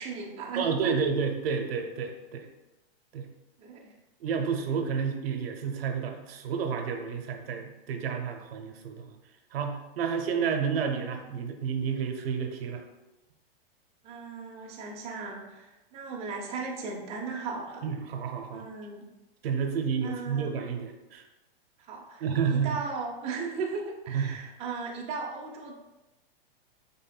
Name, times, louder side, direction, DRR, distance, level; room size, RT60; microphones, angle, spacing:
voice 1, 0.0-1.0 3.6-3.9 14.0-17.9 18.5-19.0 20.0-20.5 21.8-25.7, right 4 dB, 20° right, -1 dB, 0.6 m, -36 dB
voice 2, 0.6-2.5 3.1-3.3 4.2-9.1 9.5-12.8 17.8-18.6 19.4-21.2 22.2-22.7 24.1-24.3, right 6 dB, 75° right, 4 dB, 0.8 m, -30 dB
5.5 x 3.6 x 2.2 m, 1.0 s
hypercardioid pair, 140°, 30 cm